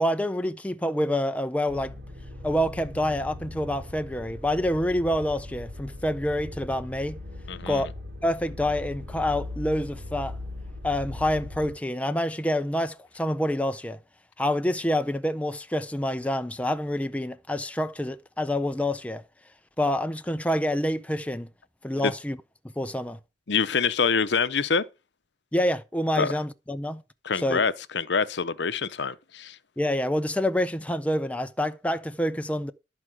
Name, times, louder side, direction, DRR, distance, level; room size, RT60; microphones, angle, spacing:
voice 1, 0.0-1.9 2.4-7.2 7.7-7.9 8.2-10.4 10.8-14.0 14.4-19.2 19.8-21.5 21.8-22.4 22.8-23.2 25.5-27.0 27.4-27.6 29.8-32.7, left 1 dB, 5° left, 0.5 m, -27 dB
sound 1, 1.7-11.7, left 2 dB, 65° right, 3.2 m, -39 dB
voice 2, 7.5-7.9 22.0-22.1 23.5-24.8 26.2-26.3 27.2-29.6, left 5 dB, 70° left, 0.7 m, -26 dB
12.5 x 4.8 x 7.6 m
head